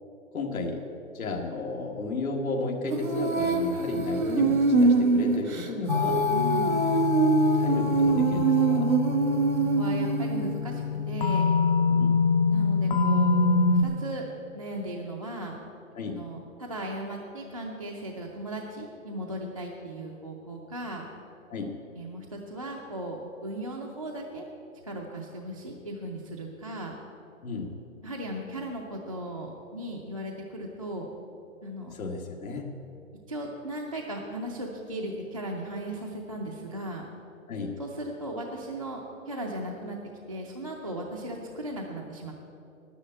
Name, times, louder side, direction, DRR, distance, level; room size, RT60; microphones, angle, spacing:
voice 1, 0.3-0.8 1.1-6.3 7.5-8.9 11.9-12.2 16.0-16.2 21.5-21.8 27.4-27.8 31.9-32.8 37.5-37.8, left 3 dB, 80° left, 0 dB, 1.8 m, -33 dB
Female singing, 2.9-10.6, right 4 dB, 80° right, 1.7 m, -24 dB
sound 1, 5.9-13.8, left 4 dB, 40° left, 0.7 m, -25 dB
voice 2, 6.3-6.8 9.6-11.5 12.5-13.3 13.7-14.3 14.5-15.5 16.1-21.1 22.0-24.5 24.8-26.9 28.0-31.1 31.6-32.0 33.3-37.1 37.8-40.0 40.3-42.3, right 1 dB, 25° right, -2 dB, 0.5 m, -37 dB
9.9 x 9.6 x 8.4 m, 2.9 s
hypercardioid pair, 175°, 41 cm